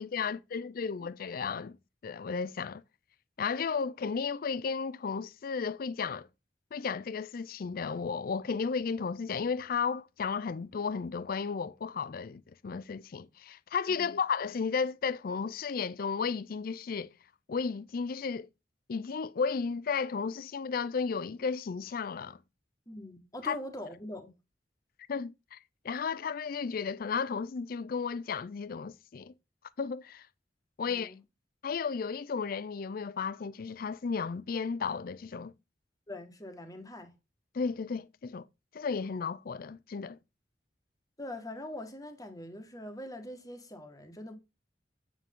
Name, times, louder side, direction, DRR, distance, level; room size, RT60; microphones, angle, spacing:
voice 1, 0.0-1.8 2.0-2.8 3.4-6.3 6.7-17.1 17.5-18.5 18.9-22.4 23.4-23.6 25.1-25.6 25.8-29.3 29.8-30.3 30.8-31.1 31.6-35.5 37.5-38.5 38.7-40.2, left 5 dB, 55° left, 0.4 m, -34 dB
voice 2, 22.9-24.3 30.8-31.2 36.1-37.1 41.2-44.4, left 1 dB, 20° left, 1.7 m, -43 dB
9.0 x 7.1 x 3.7 m
head